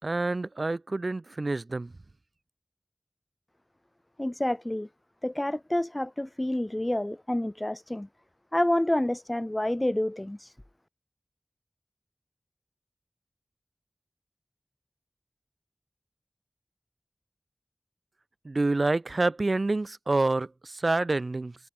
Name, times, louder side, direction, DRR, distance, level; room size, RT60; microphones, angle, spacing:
voice 1, 0.0-1.9 18.4-21.6, right 2 dB, 70° right, 3.3 m, -27 dB
voice 2, 4.2-4.9 5.2-8.1 8.5-10.5, left 1 dB, 25° left, 1.3 m, -28 dB
wide cardioid pair, 40°, 0 cm